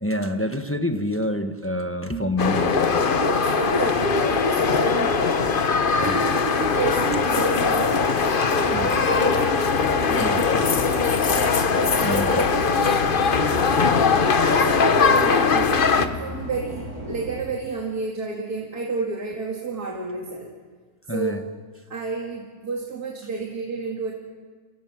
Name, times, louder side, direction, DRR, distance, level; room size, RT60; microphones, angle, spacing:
voice 1, 0.0-3.0 6.0-6.2 8.7-9.0 10.2-10.4 11.4-12.4 21.1-21.4, left 1 dB, 10° left, 6 dB, 1.0 m, -28 dB
sound 1, 2.4-16.1, left 5 dB, 40° left, 1.1 m, -21 dB
voice 2, 3.2-5.6 6.0-8.1 8.6-9.7 10.1-10.9 11.9-13.6 14.2-20.5 21.1-21.4 21.9-24.1, right 3 dB, 85° right, -1 dB, 2.7 m, -30 dB
sound 2, 8.5-17.4, left 1 dB, 75° left, 8.4 m, -36 dB
28.5 x 23.0 x 6.0 m, 1.5 s
omnidirectional pair, 1.6 m